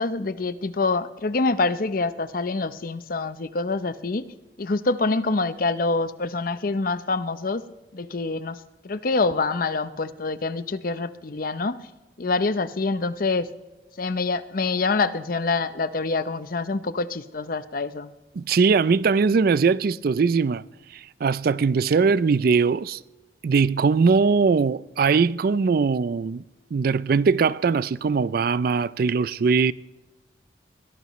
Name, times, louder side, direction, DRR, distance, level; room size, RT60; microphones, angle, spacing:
voice 1, 0.0-4.2 4.6-7.6 7.9-8.6 8.8-11.8 12.2-13.5 14.0-18.1, left 3 dB, 50° left, 0.7 m, -26 dB
voice 2, 18.4-20.6 20.9-23.0 23.4-26.4 26.7-29.7, right 5 dB, 55° right, 0.4 m, -21 dB
22.0 x 17.5 x 3.1 m
head